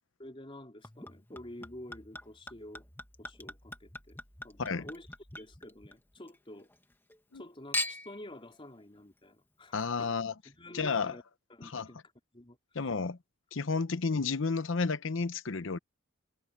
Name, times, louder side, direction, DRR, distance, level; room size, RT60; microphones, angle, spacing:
voice 1, 0.2-2.8 3.2-5.1 5.3-6.7 7.3-10.2 10.4-11.2 11.5-12.0 12.3-12.9, left 1 dB, 25° left, 3.9 m, -49 dB
Chink clink / Liquid, 0.8-6.4 6.7-7.4 7.7-8.3 9.0-9.1, left 1 dB, 10° left, 1.8 m, -41 dB
voice 2, 9.7-10.3 10.7-11.1 11.6-11.9 12.7-13.2 13.5-15.8, left 4 dB, 70° left, 0.8 m, -31 dB
head